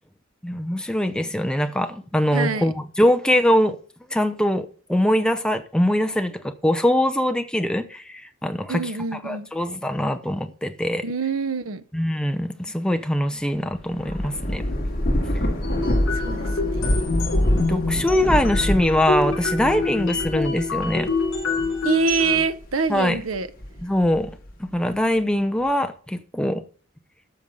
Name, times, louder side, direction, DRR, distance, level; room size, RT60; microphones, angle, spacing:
voice 1, 0.4-3.8 4.1-8.8 9.2-11.0 11.9-14.6 17.6-21.1 22.9-23.2 23.8-24.3 24.6-26.6, left 1 dB, 5° left, 0.7 m, -22 dB
voice 2, 2.3-2.7 8.7-9.5 11.0-11.8 16.1-16.8 21.8-23.5, right 4 dB, 85° right, 0.8 m, -25 dB
Thunder / Rain, 13.7-22.6 23.2-24.5, equal, 45° left, 2.5 m, -26 dB
sound 1, 15.6-22.4, left 4 dB, 65° left, 3.3 m, -27 dB
12.5 x 6.4 x 5.3 m
head